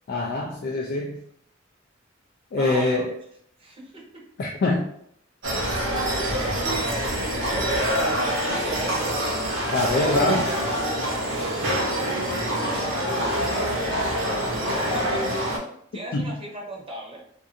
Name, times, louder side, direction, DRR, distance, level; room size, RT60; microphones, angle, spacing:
voice 1, 0.1-1.2 2.5-3.1 4.4-4.9 9.7-10.5 16.1-16.4, left 2 dB, 55° left, -1 dB, 0.3 m, -24 dB
voice 2, 2.6-3.0 3.6-4.0 6.3-9.2 9.9-11.8 12.3-13.7 14.5-15.5 15.9-17.2, right 2 dB, 30° right, -2 dB, 0.7 m, -37 dB
sound 1, 5.4-15.6, equal, 75° right, 0.8 m, -25 dB
2.6 x 2.4 x 2.5 m, 0.70 s
head